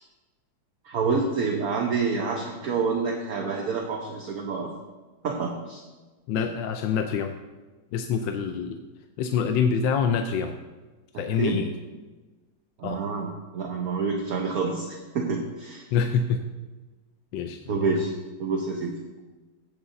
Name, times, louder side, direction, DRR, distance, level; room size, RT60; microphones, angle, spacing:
voice 1, 0.8-4.7 5.2-5.8 6.4-6.5 11.1-11.6 12.8-15.9 17.7-18.1 18.4-19.0, right 4 dB, 60° right, 2 dB, 1.1 m, -28 dB
voice 2, 6.3-7.4 7.9-8.8 9.2-10.6 11.2-11.7 12.8-13.0 15.9-16.4 17.3-17.8, left 6 dB, 80° left, 6 dB, 1.3 m, -26 dB
15.5 x 7.9 x 2.6 m, 1.3 s
omnidirectional pair, 2.1 m